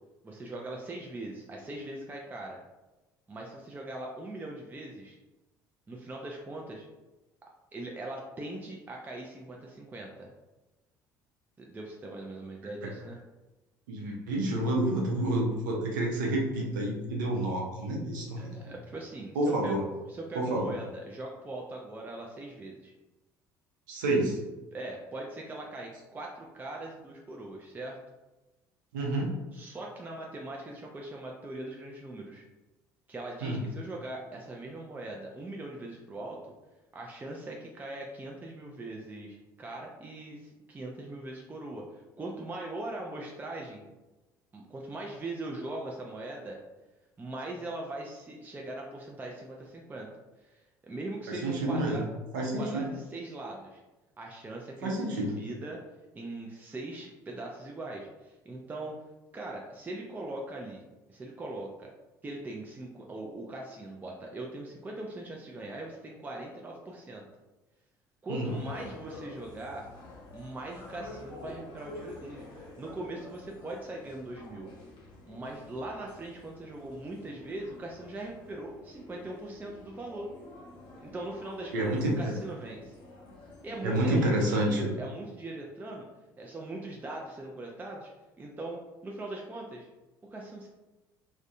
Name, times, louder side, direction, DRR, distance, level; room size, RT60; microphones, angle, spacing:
voice 1, 0.2-2.6 3.3-5.2 5.9-6.9 7.7-10.3 11.6-13.2 18.4-19.7 20.1-22.9 24.7-28.0 29.5-32.5 33.1-36.5 36.9-43.9 44.5-46.6 47.2-50.1 50.4-52.1 52.4-53.8 54.2-55.8 56.1-58.9 59.3-60.8 61.1-61.9 62.2-67.2 68.2-69.9 70.3-74.7 75.3-80.3 81.0-83.0 83.6-86.1 86.4-88.1 88.4-89.9 90.3-90.7, right 2 dB, 20° right, -1 dB, 0.4 m, -40 dB
voice 2, 13.9-18.7 19.3-19.8 20.3-20.8 23.9-24.4 28.9-29.3 33.4-33.6 51.3-52.0 52.3-52.9 54.8-55.4 68.3-68.5 81.7-82.4 83.8-84.9, right 1 dB, 75° right, -2 dB, 0.6 m, -29 dB
sound 1, 68.4-84.0, left 2 dB, 55° left, 0.7 m, -49 dB
2.5 x 2.1 x 2.4 m, 1.1 s
hypercardioid pair, 60°, 10 cm